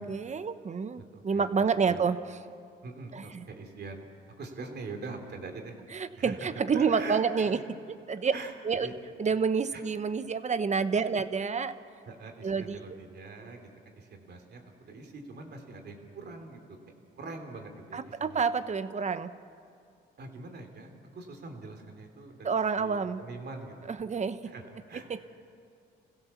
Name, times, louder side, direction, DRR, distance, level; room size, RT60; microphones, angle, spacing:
voice 1, 0.0-2.2 3.1-3.2 5.9-7.6 8.1-8.3 8.6-8.9 9.2-11.7 12.4-12.8 17.9-19.3 22.4-23.2 24.0-24.4 25.1-25.2, right 5 dB, 35° right, 12 dB, 1.0 m, -28 dB
voice 2, 1.0-1.5 1.9-2.0 2.8-4.1 4.4-5.8 6.2-7.6 8.3-8.5 8.8-9.0 9.7-9.8 11.0-11.1 12.0-16.8 17.2-18.4 20.2-23.9 24.4-25.1, right 3 dB, 55° right, 4 dB, 3.2 m, -43 dB
26.0 x 16.0 x 7.1 m, 2.3 s
cardioid pair, 90°, 20 cm